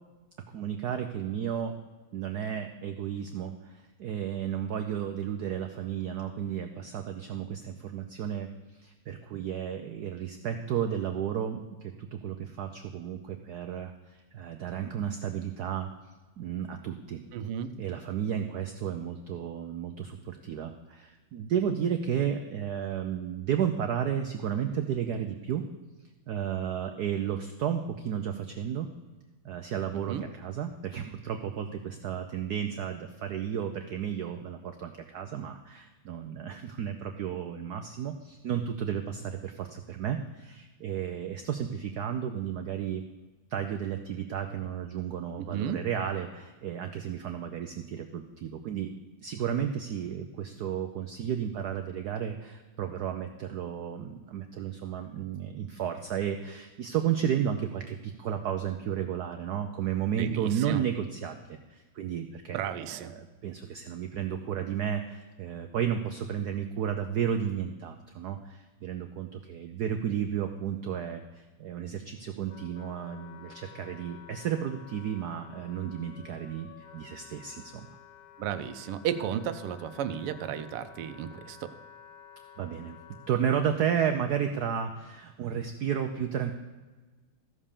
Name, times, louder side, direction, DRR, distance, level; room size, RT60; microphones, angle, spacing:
voice 1, 0.5-1.8 2.1-15.9 16.4-17.2 17.8-25.6 26.3-28.9 29.4-43.0 43.5-48.9 49.2-77.9 82.6-83.0 83.3-86.5, right 8 dB, 75° right, 6 dB, 0.9 m, -33 dB
voice 2, 17.3-17.7 30.1-30.2 45.4-45.8 60.2-60.8 62.5-63.1 78.4-81.7, right 9 dB, 90° right, 11 dB, 1.7 m, -33 dB
Wind instrument woodwind instrument, 71.9-83.5, left 8 dB, 65° left, 1.6 m, -52 dB
15.0 x 5.5 x 6.6 m, 1.3 s
omnidirectional pair, 2.4 m